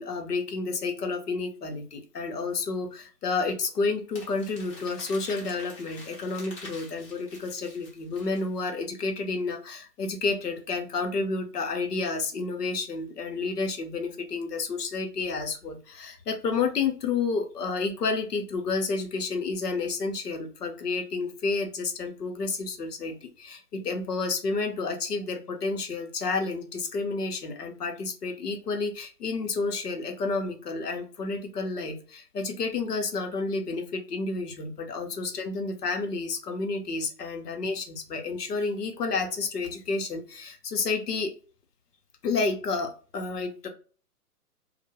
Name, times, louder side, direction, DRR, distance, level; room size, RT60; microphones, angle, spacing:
voice 1, 0.0-41.3 42.2-43.7, left 4 dB, 80° left, 4 dB, 0.7 m, -30 dB
Crumpling crinkling, 4.1-8.7, left 2 dB, 20° left, 0.6 m, -47 dB
2.2 x 2.1 x 2.7 m, 0.39 s
figure-of-eight pair, 120°, 47 cm